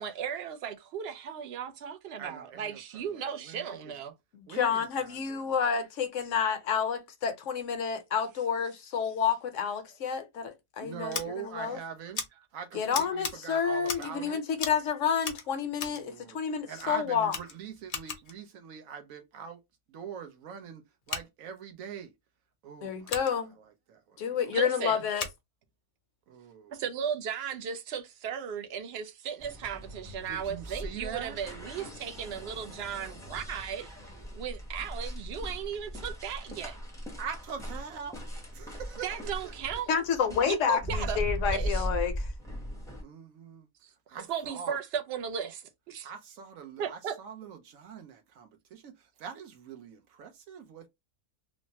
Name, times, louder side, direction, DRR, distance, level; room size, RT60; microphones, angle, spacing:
voice 1, 0.0-4.1 24.5-25.0 26.7-33.9 34.3-36.8 39.0-39.9 40.5-41.9 43.8-43.9 44.3-46.1 46.8-47.2, right 8 dB, 65° right, 0.7 m, -36 dB
voice 2, 2.2-4.0 4.5-5.5 10.8-12.2 12.5-14.4 15.8-16.4 16.7-19.6 19.9-22.1 22.6-23.1 23.6-24.5 26.3-26.8 30.3-31.4 36.5-36.6 37.2-38.2 38.5-39.5 40.7-41.0 43.0-43.7 44.1-44.8 46.0-50.9, right 7 dB, 80° right, 1.1 m, -43 dB
voice 3, 4.3-11.8 12.7-17.3 22.8-23.5 24.2-25.3 39.9-42.3, left 7 dB, 70° left, 1.0 m, -29 dB
Scissors, 11.1-11.2 12.1-12.3 12.9-13.3 13.8-14.2 14.6-14.8 15.2-16.0 16.8-16.9 17.3-18.4 21.0-21.2 23.0-23.3 25.1-25.4, left 5 dB, 50° left, 0.6 m, -37 dB
sound 1, 29.4-43.0, equal, 5° left, 0.5 m, -38 dB
3.1 x 2.1 x 2.7 m
omnidirectional pair, 1.4 m